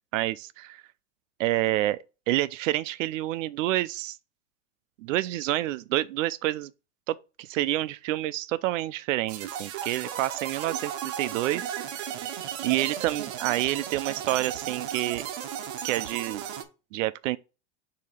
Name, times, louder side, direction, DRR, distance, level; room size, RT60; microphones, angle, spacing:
voice 1, 0.1-0.8 1.4-2.0 2.3-4.2 5.0-6.7 7.1-11.8 12.6-15.2 15.8-16.4 16.9-17.4, right 15 dB, 80° right, 0.5 m, -28 dB
sound 1, 9.3-16.6, right 9 dB, 55° right, 1.0 m, -35 dB
6.7 x 2.9 x 4.9 m
supercardioid pair, 160°, 38 cm